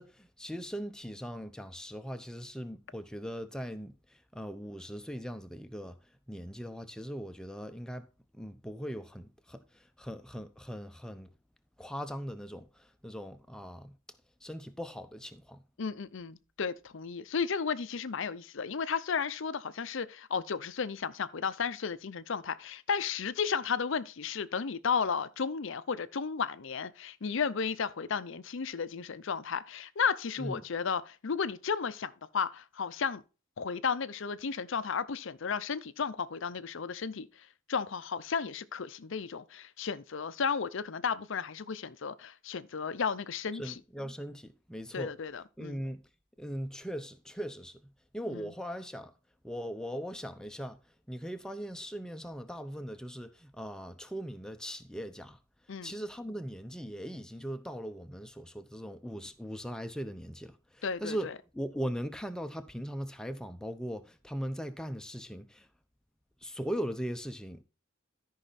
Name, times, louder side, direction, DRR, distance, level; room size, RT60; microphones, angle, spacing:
voice 1, 0.0-6.0 6.3-8.1 8.3-11.3 11.8-14.0 14.4-15.6 30.4-30.6 43.5-45.1 45.6-46.0 46.4-47.8 48.1-49.1 49.4-50.8 51.1-55.4 55.8-65.7 66.4-67.6, equal, 5° left, 0.8 m, -39 dB
voice 2, 15.8-33.2 33.6-43.8 44.9-45.8 48.3-48.5 55.7-55.9 60.8-61.3, left 6 dB, 65° left, 0.6 m, -34 dB
13.5 x 5.6 x 4.1 m
head